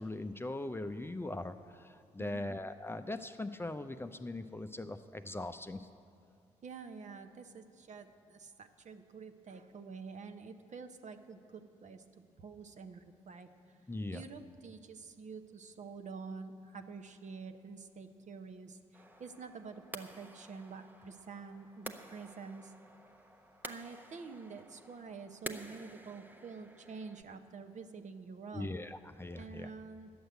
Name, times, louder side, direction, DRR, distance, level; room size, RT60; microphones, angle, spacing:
voice 1, 0.0-5.9 13.9-14.2 28.5-29.7, left 2 dB, 15° left, 8 dB, 0.6 m, -40 dB
voice 2, 2.2-2.5 6.6-12.0 12.4-13.5 14.1-22.7 23.6-28.7 29.3-30.1, right 5 dB, 45° right, 7 dB, 0.9 m, -48 dB
sound 1, 18.9-27.2, right 1 dB, 10° right, 1.0 m, -50 dB
11.0 x 7.9 x 9.0 m, 2.3 s
hypercardioid pair, 40°, 17 cm